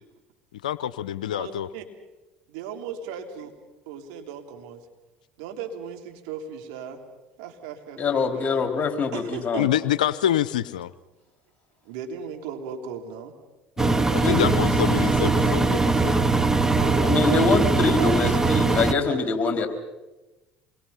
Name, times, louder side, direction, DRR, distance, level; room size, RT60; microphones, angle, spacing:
voice 1, 0.6-1.7 9.6-10.9 14.1-16.2 16.7-16.8, left 11 dB, 85° left, 16 dB, 0.7 m, -26 dB
voice 2, 1.3-1.8 2.5-3.5 3.9-4.8 5.4-7.0 7.4-8.7 9.1-9.9 11.8-13.3 16.8-17.4 17.9-19.2, right 7 dB, 75° right, 4 dB, 3.2 m, -37 dB
voice 3, 8.0-9.7 13.8-13.9 14.2-14.6 17.0-19.7, left 4 dB, 35° left, 5 dB, 4.3 m, -24 dB
Engine, 13.8-18.9, right 3 dB, 15° right, 1.7 m, -21 dB
27.0 x 22.0 x 5.8 m, 1.1 s
hypercardioid pair, 70°, 4 cm